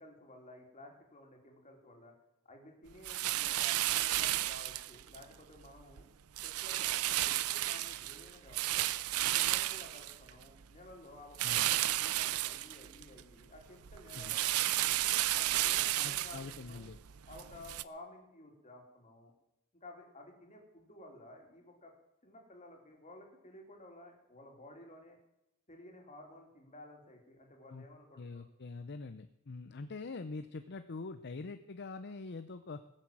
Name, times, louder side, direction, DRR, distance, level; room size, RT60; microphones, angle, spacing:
voice 1, 0.0-2.1 2.4-6.1 6.4-8.9 9.2-15.0 15.3-16.9 17.2-19.3 19.7-21.9 22.2-25.2 25.7-28.5, left 1 dB, 35° left, 1 dB, 3.3 m, -54 dB
sound 1, 3.0-5.2 5.6-6.0 6.4-10.6 11.3-13.2 13.6-17.8, right 15 dB, 85° right, 0.5 m, -33 dB
voice 2, 16.0-17.0 27.7-27.9 28.2-32.8, left 3 dB, 50° left, 10 dB, 0.7 m, -44 dB
20.0 x 7.6 x 7.6 m, 0.90 s
head